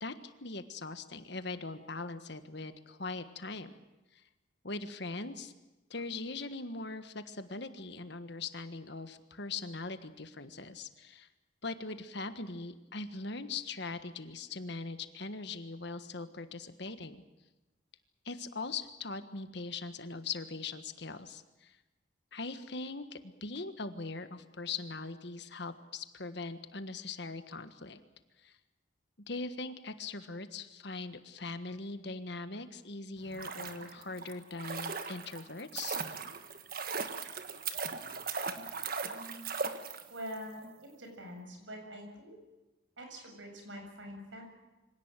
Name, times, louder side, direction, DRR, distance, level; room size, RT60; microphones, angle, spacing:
voice 1, 0.0-3.7 4.6-5.5 5.9-11.3 11.6-17.2 18.2-21.8 22.3-28.0 28.4-28.5 29.3-36.0, left 3 dB, 60° left, 10 dB, 1.5 m, -41 dB
sound 1, 33.2-40.4 40.6-40.7, right 5 dB, 45° right, 1.6 m, -38 dB
voice 2, 40.1-40.7 41.0-42.4 43.0-44.4, equal, 70° right, 3 dB, 7.3 m, -44 dB
25.0 x 17.5 x 9.0 m, 1.1 s
head